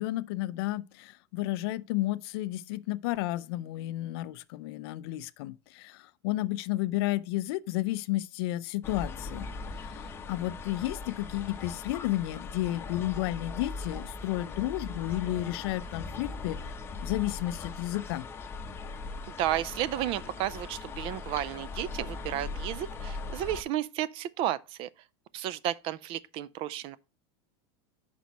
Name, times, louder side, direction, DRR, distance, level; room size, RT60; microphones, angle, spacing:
voice 1, 0.0-9.5 9.7-18.3, left 16 dB, 65° left, 0.5 m, -32 dB
sound 1, 8.8-23.6, left 4 dB, 15° left, 0.7 m, -40 dB
voice 2, 19.3-24.9 25.3-27.0, right 12 dB, 40° right, 0.4 m, -32 dB
6.1 x 5.1 x 4.0 m
supercardioid pair, 145°, 14 cm